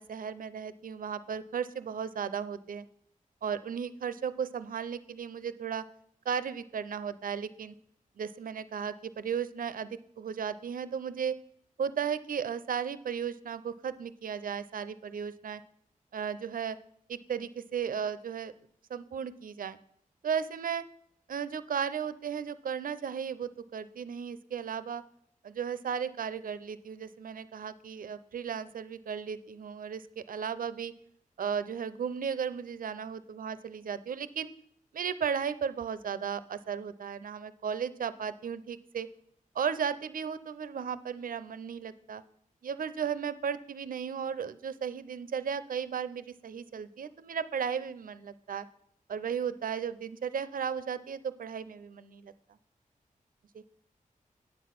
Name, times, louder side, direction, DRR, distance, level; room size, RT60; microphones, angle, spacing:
voice 1, 0.0-2.9 3.4-5.8 6.3-7.7 8.2-11.4 11.8-15.6 16.1-16.8 17.1-18.5 18.9-19.8 20.2-20.8 21.3-25.0 25.4-30.9 31.4-34.5 34.9-39.1 39.5-42.2 42.6-48.7 49.1-52.3 53.5-53.6, right 7 dB, 80° right, 14 dB, 0.6 m, -35 dB
9.5 x 7.9 x 5.8 m, 0.70 s
wide cardioid pair, 115°, 14 cm